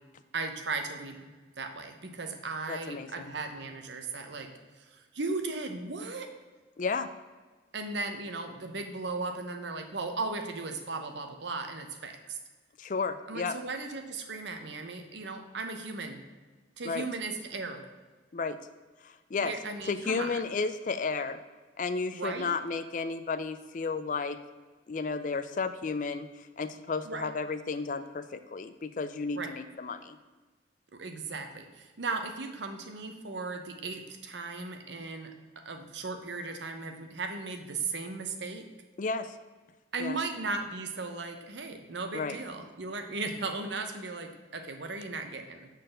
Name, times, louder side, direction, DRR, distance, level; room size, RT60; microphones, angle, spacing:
voice 1, 0.3-1.2 1.6-4.5 4.8-6.3 7.7-12.4 13.3-16.2 16.8-17.8 19.4-20.4 22.1-22.5 27.1-27.3 29.4-29.5 30.9-38.7 39.9-45.7, right 3 dB, 70° right, 6 dB, 0.9 m, -36 dB
voice 2, 2.7-3.1 6.8-7.1 12.8-13.6 16.8-17.1 18.3-18.6 19.0-19.5 19.9-21.4 21.8-24.4 24.9-30.2 39.0-39.4 40.0-40.2 42.1-42.4, left 4 dB, 45° left, 11 dB, 0.4 m, -33 dB
6.5 x 4.1 x 6.4 m, 1.3 s
head